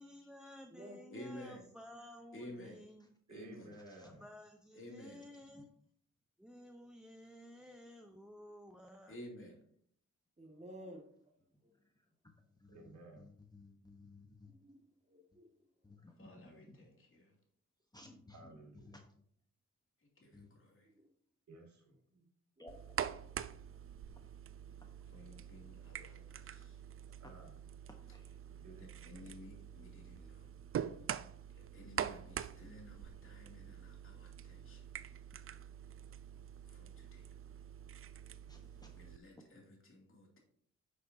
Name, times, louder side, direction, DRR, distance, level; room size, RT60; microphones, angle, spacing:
voice 1, 0.0-3.1 4.0-5.7 6.4-9.2, left 1 dB, 5° right, 4 dB, 0.8 m, -54 dB
voice 2, 1.1-1.6 2.3-2.8 3.3-3.7 4.7-5.2 9.1-9.6 16.2-17.3 20.2-20.9 25.1-26.8 28.8-30.5 31.5-34.9 36.7-37.3 38.9-40.4, left 1 dB, 45° left, 0 dB, 2.8 m, -53 dB
voice 3, 3.3-4.3 12.7-13.3 18.3-19.0 21.5-22.2 25.1-25.2 27.2-27.5 28.5-29.3, right 2 dB, 70° right, 0 dB, 2.7 m, -56 dB
voice 4, 10.4-11.3 11.6-11.7 14.4-15.5 15.8-15.9 20.9-21.1 22.6-22.7, equal, 20° right, 2 dB, 2.0 m, -54 dB
voice 5, 12.4-14.5 15.8-16.9 17.9-18.6 18.8-19.0 20.3-20.5 22.6-22.8 28.1-28.4 36.3-36.4 38.5-38.9, left 2 dB, 15° left, 3 dB, 1.1 m, -58 dB
sound 1, 22.7-39.2, right 9 dB, 45° right, 0.4 m, -45 dB
10.0 x 6.7 x 2.8 m, 0.62 s
cardioid pair, 85°, 30 cm